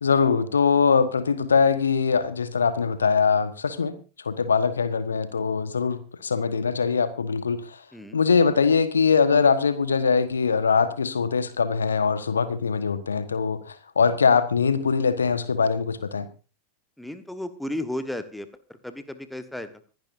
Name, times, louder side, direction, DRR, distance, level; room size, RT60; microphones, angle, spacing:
voice 1, 0.0-4.0 4.2-7.6 8.1-16.3, left 5 dB, 70° left, 12 dB, 1.3 m, -22 dB
voice 2, 17.0-19.7, left 1 dB, 5° left, 10 dB, 1.3 m, -34 dB
25.5 x 11.0 x 2.7 m, 0.33 s
figure-of-eight pair, 90°, 0 cm